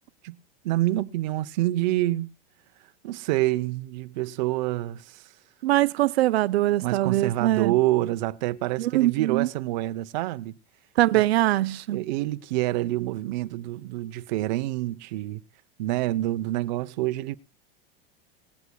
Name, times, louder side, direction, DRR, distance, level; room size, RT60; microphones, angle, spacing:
voice 1, 0.6-2.3 3.0-5.2 6.8-10.6 11.1-11.2 11.9-15.4 15.8-17.4, right 16 dB, 45° right, 0.8 m, -27 dB
voice 2, 5.6-7.7 8.8-9.5 11.0-12.0, right 15 dB, 80° right, 0.7 m, -22 dB
19.0 x 16.5 x 2.3 m
supercardioid pair, 170°, 31 cm